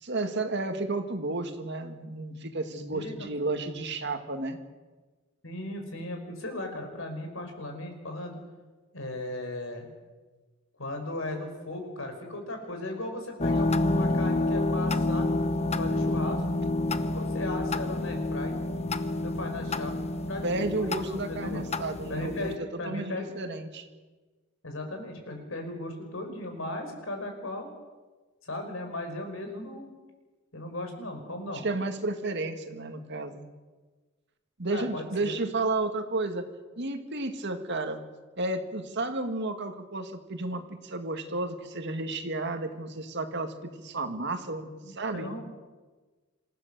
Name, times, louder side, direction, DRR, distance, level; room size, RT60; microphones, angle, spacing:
voice 1, 0.0-4.6 20.4-23.9 31.5-33.4 34.6-36.5 36.8-38.0 38.4-45.3, right 2 dB, 55° right, 7 dB, 2.1 m, -32 dB
voice 2, 5.4-8.4 8.9-9.9 10.8-15.3 15.8-16.4 17.0-18.6 19.2-21.6 22.1-23.3 24.6-27.7 28.4-29.9 30.5-31.7 34.7-35.4 44.8-45.4, left 1 dB, 70° left, 4 dB, 5.0 m, -37 dB
sound 1, 13.4-22.6, left 2 dB, 30° left, 0.9 m, -28 dB
27.0 x 15.5 x 6.8 m, 1.3 s
head